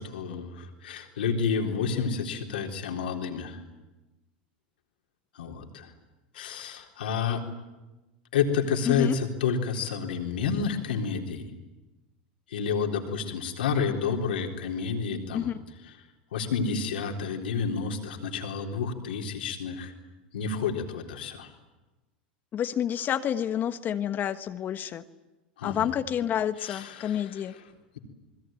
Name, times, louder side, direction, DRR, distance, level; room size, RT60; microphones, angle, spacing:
voice 1, 0.0-3.6 5.3-5.9 6.3-7.4 8.3-11.4 12.5-15.5 16.3-19.9 20.3-21.5 25.6-25.9 26.6-27.5, left 6 dB, 80° left, 3 dB, 3.9 m, -30 dB
voice 2, 8.9-9.2 15.3-15.6 22.5-25.0 25.6-27.5, left 10 dB, 40° left, 10 dB, 1.3 m, -29 dB
29.0 x 21.5 x 9.1 m, 1.1 s
hypercardioid pair, 95°, 5 cm